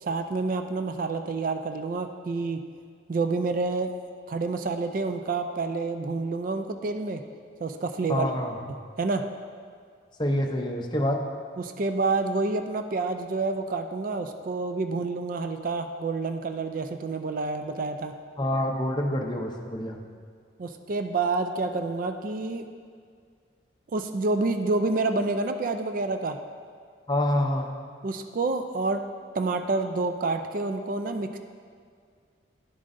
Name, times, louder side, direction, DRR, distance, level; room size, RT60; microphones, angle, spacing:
voice 1, 0.0-2.6 3.1-3.9 4.3-7.2 7.6-8.3 9.0-9.3 11.6-18.1 20.6-22.7 23.9-26.4 28.0-29.0 29.3-31.4, right 3 dB, 45° right, 7 dB, 0.3 m, -28 dB
voice 2, 8.1-8.6 10.2-11.2 18.4-20.0 27.1-27.7, left 1 dB, 25° left, 2 dB, 0.6 m, -27 dB
10.5 x 7.3 x 2.6 m, 2.1 s
head